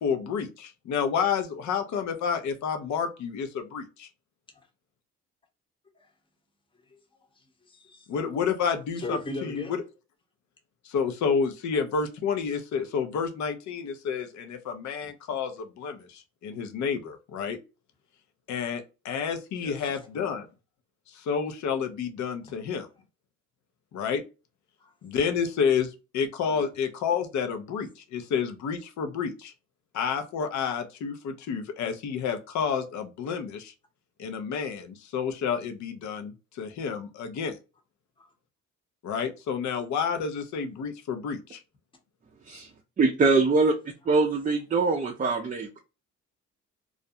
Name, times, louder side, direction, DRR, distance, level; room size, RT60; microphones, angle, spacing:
voice 1, 0.0-4.1 8.1-9.8 10.8-17.6 18.5-20.5 21.1-22.9 23.9-24.2 25.0-29.5 29.9-33.7 34.2-37.6 39.0-41.6, left 6 dB, 70° left, 0.7 m, -30 dB
voice 2, 7.4-8.2 9.0-9.7 19.6-20.0 24.8-24.9 26.5-26.7 38.2-38.3, left 2 dB, 15° left, 0.9 m, -39 dB
voice 3, 43.0-43.7 44.1-45.8, right 3 dB, 25° right, 0.5 m, -23 dB
2.5 x 2.1 x 2.6 m
cardioid pair, 90°, 30 cm